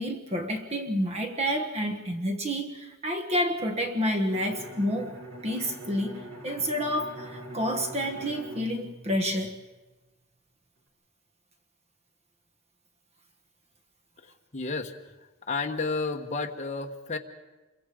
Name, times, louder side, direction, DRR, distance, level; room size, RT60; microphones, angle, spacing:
voice 1, 0.0-5.2 5.4-9.6, equal, 30° right, 5 dB, 1.3 m, -29 dB
Bowed string instrument, 4.3-10.0, right 1 dB, 70° right, 3.8 m, -43 dB
voice 2, 14.2-15.1 15.4-17.2, left 3 dB, 35° left, 3 dB, 1.3 m, -32 dB
27.5 x 23.0 x 5.1 m, 1.2 s
head